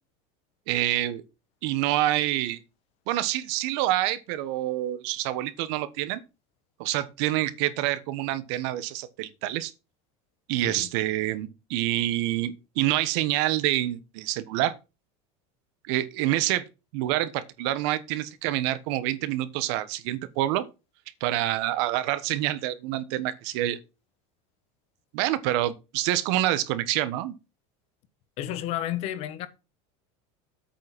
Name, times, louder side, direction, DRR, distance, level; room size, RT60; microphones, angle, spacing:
voice 1, 0.7-1.2 1.6-2.6 3.1-6.2 6.8-9.7 10.5-14.7 15.9-16.6 16.9-20.6 21.2-23.8 25.1-27.3, right 14 dB, 60° right, 1.2 m, -27 dB
voice 2, 28.4-29.5, left 12 dB, 40° left, 1.1 m, -31 dB
8.6 x 6.1 x 6.0 m
cardioid pair, 170°, 16 cm